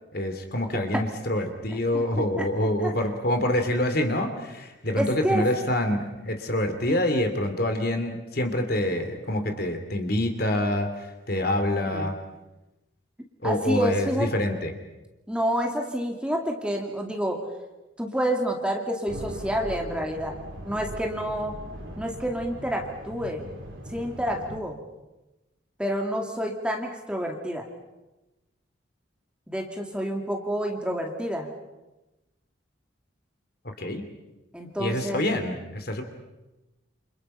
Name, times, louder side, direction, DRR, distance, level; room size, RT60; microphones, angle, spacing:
voice 1, 0.1-12.1 13.4-14.7 33.8-34.0 34.8-36.0, left 1 dB, 50° left, 7 dB, 2.9 m, -26 dB
voice 2, 1.7-2.9 5.0-5.6 6.9-7.0 11.8-12.1 13.4-14.3 15.3-17.5 18.0-20.4 20.6-21.6 22.0-23.5 23.9-24.8 25.8-27.7 29.5-31.5 34.5-35.2, equal, 5° right, 1 dB, 2.4 m, -29 dB
sound 1, 19.1-24.6, right 1 dB, 85° right, 4.0 m, -40 dB
29.0 x 27.0 x 5.6 m, 1.0 s
head